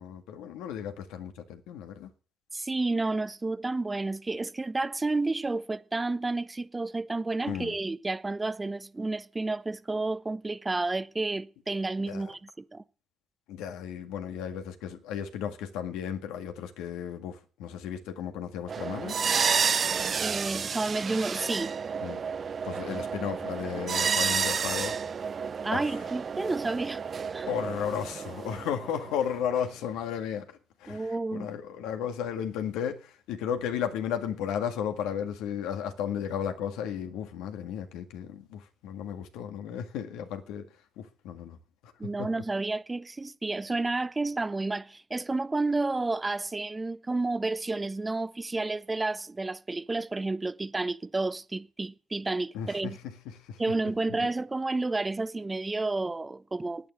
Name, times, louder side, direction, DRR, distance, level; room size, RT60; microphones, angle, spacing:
voice 1, 0.0-2.1 7.5-7.8 12.1-12.3 13.5-19.2 22.0-22.2 22.6-25.0 25.7-26.0 27.5-40.7 41.0-41.6 41.8-42.3 52.5-53.7 54.2-54.3, left 8 dB, 80° left, 1.8 m, -34 dB
voice 2, 2.5-12.8 20.2-21.7 25.6-27.0 27.3-27.5 30.9-31.5 42.0-53.0 53.6-56.9, right 3 dB, 20° right, 0.9 m, -31 dB
sound 1, 18.7-29.6, right 6 dB, 45° right, 0.6 m, -31 dB
10.5 x 9.3 x 9.5 m
supercardioid pair, 65°, 0 cm